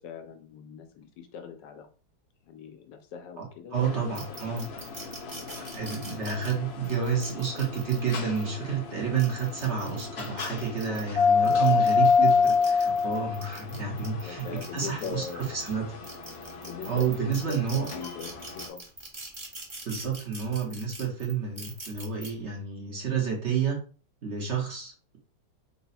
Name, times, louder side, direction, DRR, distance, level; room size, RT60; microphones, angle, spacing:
voice 1, 0.0-1.9 2.4-4.1 11.4-11.8 13.5-13.7 14.1-15.6 16.6-18.8, left 7 dB, 85° left, 6 dB, 1.4 m, -41 dB
voice 2, 3.7-4.7 5.7-16.0 16.9-17.9 19.8-23.8 24.2-25.2, right 6 dB, 45° right, -1 dB, 1.3 m, -30 dB
sound 1, 3.8-18.7, left 5 dB, 55° left, 0.7 m, -29 dB
sound 2, 4.2-8.4 9.0-11.0 11.4-15.7 16.0-22.3, right 2 dB, 25° right, 0.6 m, -44 dB
4.0 x 2.3 x 4.1 m, 0.38 s
omnidirectional pair, 1.9 m